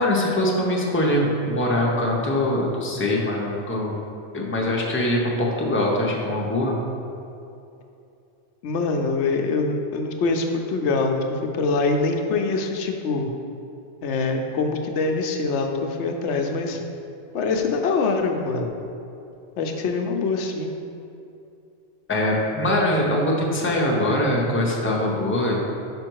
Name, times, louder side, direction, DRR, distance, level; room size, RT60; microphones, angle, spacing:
voice 1, 0.0-4.0 4.3-6.8 22.1-25.6, left 1 dB, 15° left, -2 dB, 0.7 m, -22 dB
voice 2, 8.6-13.3 14.0-16.8 17.3-18.7 19.6-20.7, left 3 dB, 85° left, 4 dB, 0.9 m, -24 dB
5.4 x 5.2 x 4.6 m, 2.7 s
omnidirectional pair, 1.2 m